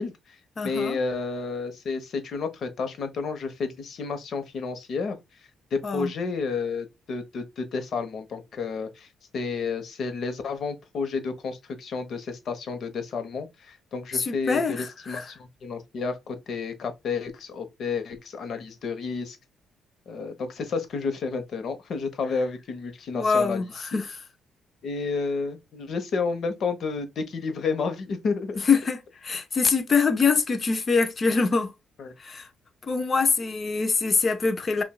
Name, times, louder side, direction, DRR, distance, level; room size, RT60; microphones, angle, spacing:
voice 1, 0.0-0.4 0.6-5.2 5.7-9.1 9.3-19.4 20.1-23.6 23.9-24.0 24.8-28.6 32.0-32.1, left 4 dB, 60° left, 1.0 m, -31 dB
voice 2, 0.6-1.0 5.8-6.1 14.1-15.3 23.1-24.2 28.7-31.7 32.2-32.5 32.8-34.8, left 4 dB, 40° left, 0.7 m, -24 dB
5.5 x 2.5 x 2.3 m
cardioid pair, 90°, 0 cm